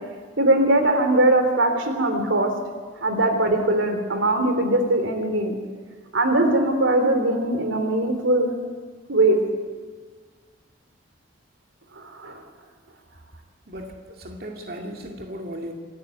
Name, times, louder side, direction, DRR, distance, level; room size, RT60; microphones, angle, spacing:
voice 1, 0.4-2.5 3.0-5.5 6.1-8.5 9.1-9.4 11.9-12.4, right 1 dB, 85° right, 6 dB, 3.3 m, -20 dB
voice 2, 13.7-15.7, equal, 50° right, 1 dB, 2.4 m, -36 dB
26.0 x 13.0 x 9.3 m, 1.5 s
head